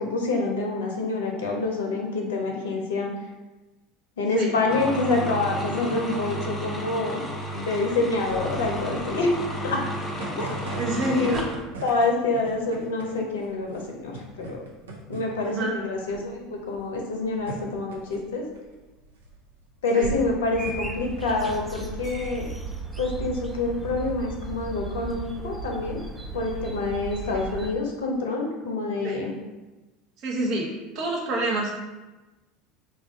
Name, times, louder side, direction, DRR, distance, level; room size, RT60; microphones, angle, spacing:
voice 1, 0.0-3.1 4.2-7.3 7.5-9.4 9.6-9.8 10.4-10.6 11.1-11.4 11.8-14.6 15.1-18.5 19.8-22.5 23.0-26.0 26.3-29.3, left 3 dB, 70° left, 1 dB, 0.6 m, -27 dB
sound 1, 4.7-11.6, equal, 15° left, 0.7 m, -32 dB
sound 2, 8.1-22.3, right 3 dB, 75° right, 0.6 m, -41 dB
voice 2, 10.8-11.5 15.4-15.8 19.9-20.1 27.3-27.5 29.0-29.2 30.2-30.7 30.9-31.8, right 1 dB, 50° right, -1 dB, 0.8 m, -27 dB
sound 3, 20.5-27.7, right 4 dB, 15° right, 0.4 m, -36 dB
3.6 x 2.5 x 3.5 m, 1.1 s
figure-of-eight pair, 70°, 0 cm